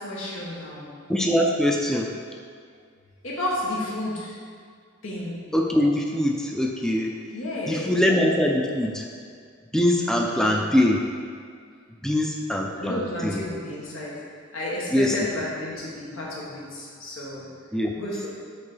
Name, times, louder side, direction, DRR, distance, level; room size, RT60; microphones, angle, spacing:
voice 1, 0.0-0.9 3.2-4.4 5.0-5.4 7.3-8.0 10.2-10.7 12.8-14.1 14.5-17.4 17.9-18.3, left 1 dB, 85° left, -5 dB, 1.8 m, -32 dB
voice 2, 1.1-2.1 5.5-7.2 7.7-9.1 9.7-11.0 12.0-13.4 14.9-15.2 17.7-17.9, left 1 dB, 5° left, 1 dB, 0.4 m, -22 dB
6.0 x 4.4 x 6.1 m, 2.1 s
head